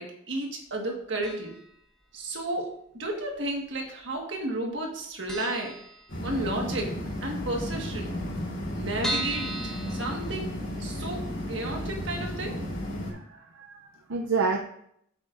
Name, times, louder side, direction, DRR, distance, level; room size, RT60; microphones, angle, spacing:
voice 1, 0.0-1.5 2.1-2.7 3.0-5.7 6.2-8.1 8.7-12.6, right 1 dB, 60° right, 1 dB, 1.7 m, -33 dB
sound 1, 1.2-1.8 2.0-2.1 3.1-3.8 4.0-4.2 4.5-4.6 4.9-5.0 5.3-6.6 7.0-7.1 7.3-7.4 7.6-7.7 8.2-10.9 11.3-11.4 11.8-11.9, right 1 dB, 5° left, 1.0 m, -37 dB
sound 2, 6.1-13.1, left 1 dB, 65° left, 3.4 m, -34 dB
voice 2, 13.1-14.6, right 4 dB, 80° right, 2 dB, 0.6 m, -29 dB
9.0 x 7.5 x 2.6 m, 0.71 s
head